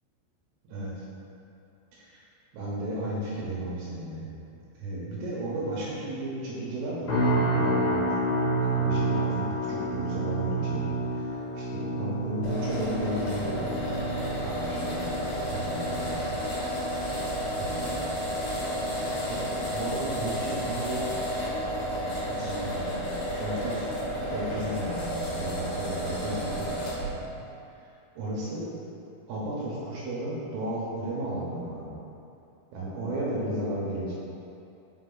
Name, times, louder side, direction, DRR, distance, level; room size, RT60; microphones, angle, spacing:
voice 1, 1.9-2.2 2.5-4.3 4.8-8.3 8.6-10.9 11.1-13.7 14.4-15.2 15.5-16.4 17.5-18.1 18.4-18.6 19.2-19.4 19.7-21.0 22.2-26.7 27.0-27.3 28.2-28.7 29.3-32.0 32.7-34.1, right 1 dB, 75° right, -6 dB, 2.8 m, -34 dB
sound 1, 7.1-22.3 22.6-23.0 23.5-23.7, right 1 dB, 85° left, 1.6 m, -31 dB
sound 2, 12.4-27.1, equal, 60° left, 3.1 m, -32 dB
6.3 x 5.4 x 3.9 m, 2.7 s
omnidirectional pair, 5.5 m